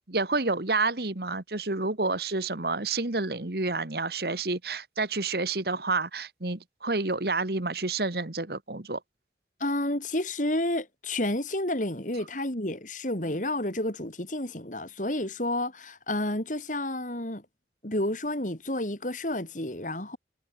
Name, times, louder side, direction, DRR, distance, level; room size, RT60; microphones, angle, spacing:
voice 1, 0.1-9.0, right 3 dB, 60° right, 1.7 m, -29 dB
voice 2, 9.6-17.4 17.8-20.2, left 1 dB, 45° left, 3.7 m, -30 dB
head